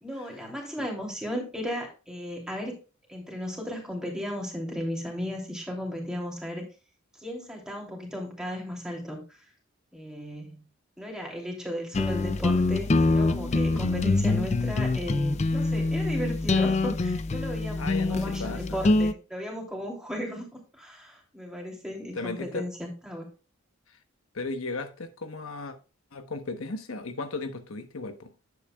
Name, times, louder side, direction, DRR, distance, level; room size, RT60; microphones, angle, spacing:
voice 1, 0.0-2.7 3.1-6.6 7.2-9.2 9.9-10.6 11.0-23.3, equal, 5° right, 2.9 m, -35 dB
sound 1, 11.9-19.1, left 3 dB, 35° left, 0.4 m, -25 dB
voice 2, 17.8-18.8 22.1-22.7 24.3-25.8 26.1-28.3, left 3 dB, 85° left, 1.2 m, -35 dB
10.5 x 8.3 x 2.4 m
head